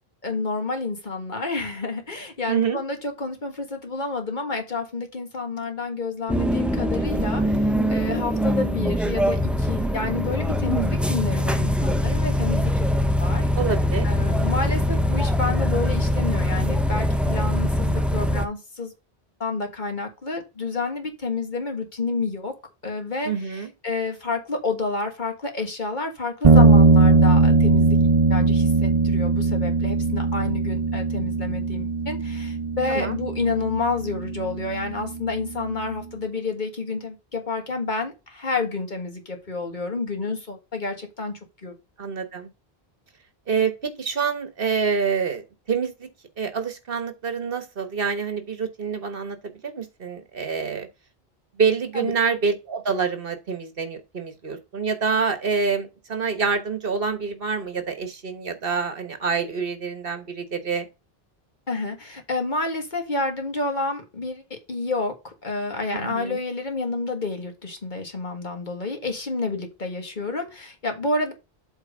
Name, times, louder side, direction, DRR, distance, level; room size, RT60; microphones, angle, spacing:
voice 1, 0.2-12.9 13.2-13.5 14.0-18.9 19.4-22.5 22.8-28.0 28.3-41.3 41.6-41.7 51.9-52.1 61.7-71.3, left 3 dB, 50° left, 1.7 m, -29 dB
voice 2, 2.5-2.8 13.6-14.1 23.2-23.7 32.9-33.2 42.0-42.5 43.5-46.1 46.4-49.4 49.6-50.9 51.6-60.9 66.0-66.4, right 5 dB, 65° right, 1.5 m, -26 dB
sound 1, 6.3-18.5, equal, ahead, 0.3 m, -23 dB
sound 2, 26.4-35.9, right 3 dB, 35° right, 0.9 m, -20 dB
8.1 x 3.6 x 5.0 m
omnidirectional pair, 1.0 m